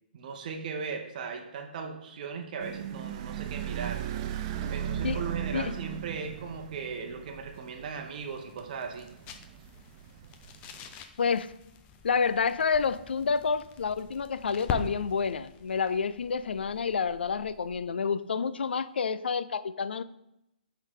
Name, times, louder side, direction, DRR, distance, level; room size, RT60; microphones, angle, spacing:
voice 1, 0.1-4.0 4.7-9.1, right 5 dB, 50° right, 4 dB, 0.8 m, -38 dB
sound 1, 2.6-10.9, right 10 dB, 35° right, 0.4 m, -37 dB
sound 2, 7.3-18.0, left 5 dB, 25° left, 0.5 m, -44 dB
voice 2, 12.0-20.0, left 5 dB, 85° left, 15 dB, 0.4 m, -29 dB
5.4 x 3.8 x 4.8 m, 0.82 s
hypercardioid pair, 145°, 5 cm